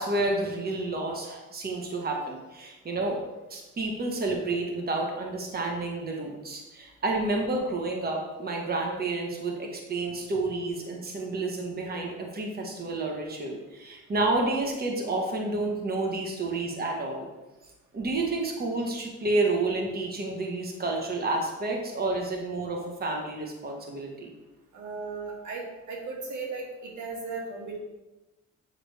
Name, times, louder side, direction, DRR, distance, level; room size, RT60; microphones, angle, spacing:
voice 1, 0.0-17.3 17.9-24.3, right 2 dB, 35° right, 1 dB, 1.3 m, -30 dB
voice 2, 24.7-27.8, right 4 dB, 90° right, -1 dB, 2.0 m, -36 dB
8.4 x 5.8 x 3.4 m, 1.1 s
cardioid pair, 120°, 29 cm